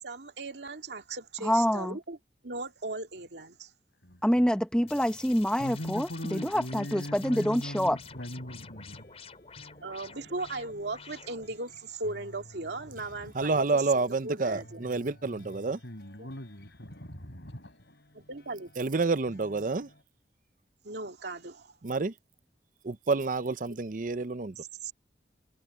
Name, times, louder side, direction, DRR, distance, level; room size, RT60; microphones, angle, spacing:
voice 1, 0.0-2.2 2.4-3.7 9.8-14.9 16.2-16.3 18.1-18.7 20.8-21.7 23.7-23.8 24.6-24.9, right 3 dB, 70° right, 2.3 m, -38 dB
voice 2, 1.4-2.0 4.2-8.0, equal, 5° left, 1.1 m, -26 dB
voice 3, 4.0-4.5 5.6-9.1 12.9-13.3 15.3-18.0, equal, 80° left, 7.1 m, -41 dB
sound 1, 4.8-20.0, left 1 dB, 65° left, 4.7 m, -56 dB
sound 2, 4.9-11.6, left 6 dB, 35° left, 4.1 m, -49 dB
voice 4, 13.3-15.8 18.8-19.9 21.8-22.1 22.8-24.6, right 3 dB, 45° right, 0.6 m, -29 dB
head